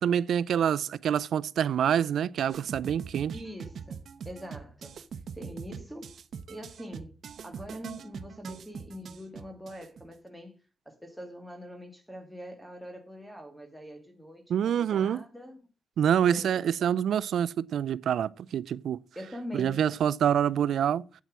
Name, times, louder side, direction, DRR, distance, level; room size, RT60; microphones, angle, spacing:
voice 1, 0.0-3.3 14.5-15.2 16.0-19.0 19.5-21.0, right 9 dB, 85° right, 0.5 m, -26 dB
sound 1, 2.5-10.1, right 7 dB, 70° right, 0.9 m, -42 dB
voice 2, 3.3-6.1 6.5-10.6 10.8-15.6 16.1-16.9 19.1-19.9, left 1 dB, ahead, 1.8 m, -44 dB
8.7 x 8.2 x 6.1 m
cardioid pair, 110°, 0 cm